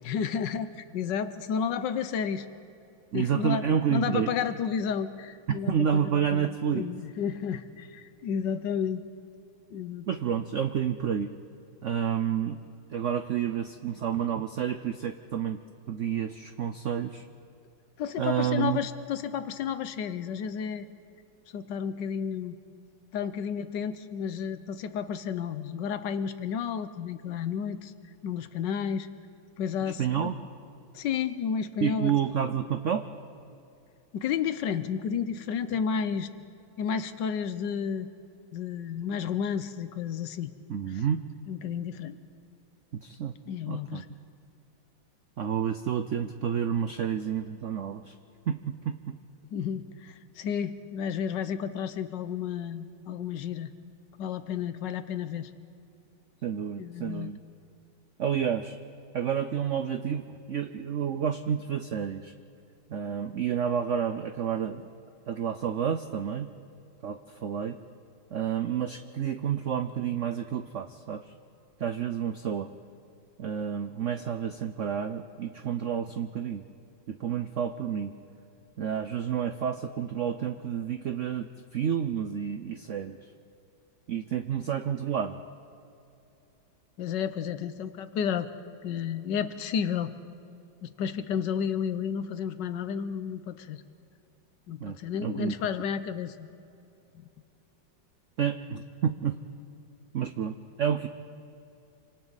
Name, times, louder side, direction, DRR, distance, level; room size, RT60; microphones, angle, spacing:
voice 1, 0.0-2.5 3.1-3.6 3.9-6.5 6.7-9.0 9.7-10.2 18.0-20.9 21.5-22.6 23.1-27.9 28.2-29.1 29.6-30.3 30.9-32.1 34.1-36.3 36.8-38.1 38.5-40.5 40.9-41.0 41.5-42.2 43.5-44.1 49.5-53.7 54.2-55.5 56.8-57.3 87.0-88.5 88.8-90.1 90.8-93.8 94.7-96.5 97.1-97.2, left 7 dB, 70° left, 12 dB, 1.4 m, -32 dB
voice 2, 3.1-4.3 5.5-6.9 10.1-11.3 11.8-12.6 12.9-15.6 15.9-17.2 18.2-18.8 30.0-30.5 31.8-33.0 40.7-41.2 42.9-43.3 43.7-44.0 45.4-48.1 48.5-49.2 56.4-57.4 58.2-58.8 59.1-62.3 62.9-64.9 65.3-66.5 67.0-67.8 68.3-71.3 71.8-72.7 73.4-76.7 77.1-78.1 78.8-83.2 84.1-85.4 94.8-95.6 98.4-99.4 100.1-101.1, right 8 dB, 80° right, 9 dB, 0.6 m, -30 dB
27.0 x 25.5 x 4.0 m, 2.7 s
omnidirectional pair, 2.1 m